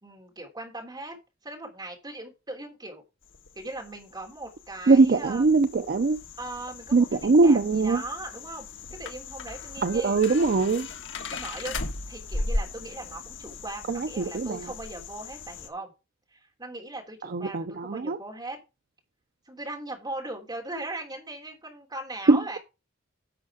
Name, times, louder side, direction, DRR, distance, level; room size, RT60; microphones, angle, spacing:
voice 1, 0.0-1.2 1.4-3.0 3.6-5.5 6.4-8.7 9.0-10.2 11.3-15.9 16.3-18.6 19.5-22.6, right 2 dB, 20° right, 3.4 m, -39 dB
sound 1, 3.3-15.7, left 2 dB, 60° left, 1.5 m, -38 dB
voice 2, 4.9-6.2 6.9-8.0 9.8-10.9 13.9-14.7 17.3-18.2 22.3-22.6, right 3 dB, 45° right, 0.5 m, -22 dB
11.0 x 6.2 x 4.9 m
head